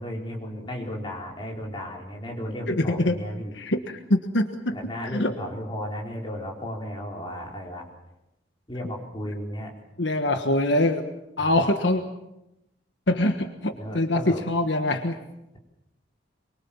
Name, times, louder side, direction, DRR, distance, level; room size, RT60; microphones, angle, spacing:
voice 1, 0.0-3.6 4.7-7.8 8.7-9.7 11.4-11.7 13.8-14.4, equal, 25° left, -1 dB, 4.6 m, -34 dB
voice 2, 2.7-3.2 3.6-4.7 5.1-5.3 10.0-11.1 11.4-12.0 13.1-15.2, left 1 dB, 70° left, 6 dB, 1.4 m, -24 dB
24.5 x 23.0 x 7.3 m, 0.92 s
head